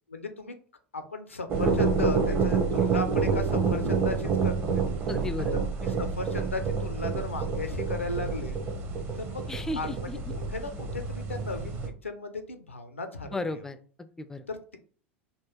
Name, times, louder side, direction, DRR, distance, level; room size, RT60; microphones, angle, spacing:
voice 1, 0.1-0.6 0.9-4.8 5.8-8.6 9.2-9.5 9.8-13.6 14.5-14.8, left 3 dB, 80° left, 8 dB, 0.5 m, -36 dB
sound 1, 1.5-11.9, right 5 dB, 30° right, 0.7 m, -28 dB
voice 2, 5.1-5.5 9.5-10.2 13.3-14.4, left 2 dB, 5° left, 10 dB, 0.3 m, -35 dB
3.7 x 2.2 x 3.0 m, 0.43 s
figure-of-eight pair, 80°, 7 cm